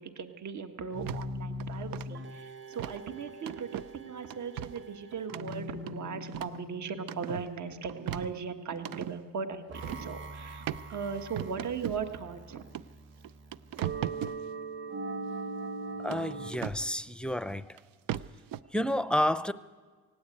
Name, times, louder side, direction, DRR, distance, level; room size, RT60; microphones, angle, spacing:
voice 1, 0.0-12.6, right 6 dB, 60° right, 1.6 m, -38 dB
sound 1, 0.9-16.5, right 1 dB, 35° right, 1.6 m, -42 dB
sound 2, 1.1-1.3 1.6-2.1 2.8-3.0 3.5-3.9 4.3-4.8 5.3-6.6 7.0-7.5 7.9-9.1 9.8-10.1 10.7-10.8 11.4-12.0 12.7-12.8 13.2-14.4 16.1-16.9 17.8-17.9 18.1-18.6, right 12 dB, 85° right, 0.6 m, -38 dB
voice 2, 16.0-17.8 18.7-19.5, left 1 dB, 5° left, 0.5 m, -30 dB
18.5 x 16.5 x 8.6 m
cardioid pair, 100°, 33 cm